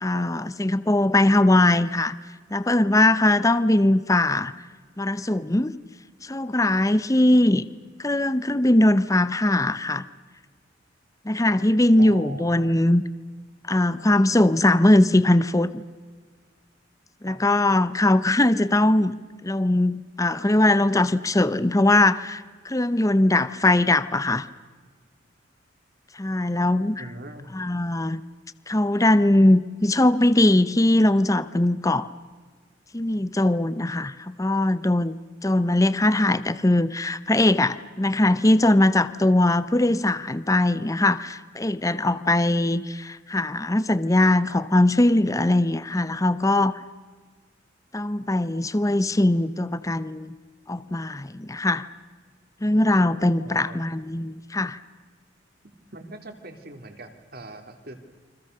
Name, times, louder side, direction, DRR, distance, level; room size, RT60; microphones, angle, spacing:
voice 1, 0.0-2.1 2.5-4.5 5.0-5.7 6.2-7.7 8.0-10.0 11.2-13.0 13.7-15.8 17.2-19.1 19.4-24.5 26.1-27.0 27.5-28.2 28.7-32.1 32.9-35.1 35.4-46.8 47.9-50.3 50.7-51.8 52.6-54.8, left 1 dB, 15° left, 15 dB, 0.7 m, -21 dB
voice 2, 12.0-12.7 17.2-17.4 27.0-27.5 53.4-53.8 55.6-58.0, right 2 dB, 55° right, 6 dB, 3.1 m, -41 dB
30.0 x 25.0 x 6.7 m, 1.5 s
head